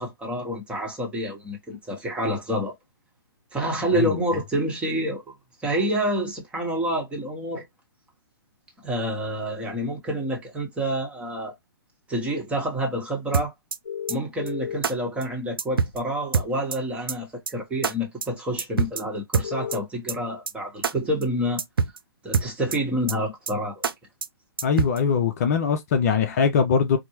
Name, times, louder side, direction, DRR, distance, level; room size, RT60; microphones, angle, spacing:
voice 1, 0.0-2.7 3.5-5.3 5.6-7.6 8.8-11.5 12.1-13.5 14.1-21.6 22.2-23.8, equal, 10° right, 1.0 m, -28 dB
sound 1, 13.3-13.8 14.1-14.2 14.5-14.6 14.8-14.9 15.2-15.3 15.6-16.0 16.3-16.8 17.1-17.2 17.5-17.6 17.8-17.9 18.2-18.3 18.6-19.0 19.3-19.8 20.1-20.2 20.5-20.6 20.8-20.9 21.2-21.3 21.6-22.0 22.3-22.8 23.1-23.2 23.5-23.6 23.8-23.9 24.2-24.3 24.6-25.0, right 5 dB, 75° right, 0.5 m, -24 dB
sound 2, 13.8-14.8 15.9-16.0 19.4-19.8, left 8 dB, 80° left, 0.7 m, -32 dB
voice 2, 24.6-27.0, left 6 dB, 40° left, 0.5 m, -21 dB
4.3 x 2.0 x 3.0 m
figure-of-eight pair, 130°, 12 cm